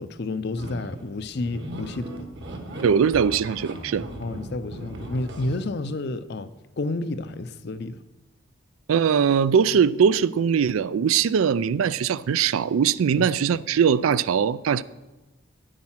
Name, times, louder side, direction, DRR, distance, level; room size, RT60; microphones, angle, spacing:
voice 1, 0.0-2.3 4.2-6.5 6.8-8.0 13.2-13.3, left 2 dB, 50° left, 0.5 m, -30 dB
sound 1, 0.6-5.7, right 1 dB, 55° right, 1.4 m, -37 dB
voice 2, 2.8-4.0 8.9-14.8, right 7 dB, 80° right, 0.4 m, -21 dB
9.6 x 8.8 x 5.7 m
head